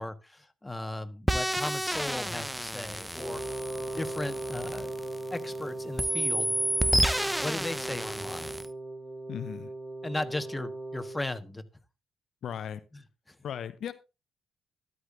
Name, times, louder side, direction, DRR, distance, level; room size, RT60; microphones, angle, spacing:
voice 1, 0.0-3.4 3.8-4.9 5.3-6.5 7.4-8.6 10.0-11.6 12.9-13.0 13.3-13.4, left 2 dB, 15° left, 1.4 m, -36 dB
sound 1, 1.3-5.6 6.0-8.7, equal, 5° right, 1.0 m, -30 dB
Wind instrument woodwind instrument, 3.2-11.2, right 2 dB, 35° right, 5.1 m, -38 dB
voice 2, 9.3-9.7 12.4-12.8 13.4-13.9, left 9 dB, 65° left, 0.6 m, -36 dB
13.0 x 11.5 x 2.6 m
hypercardioid pair, 45°, 0 cm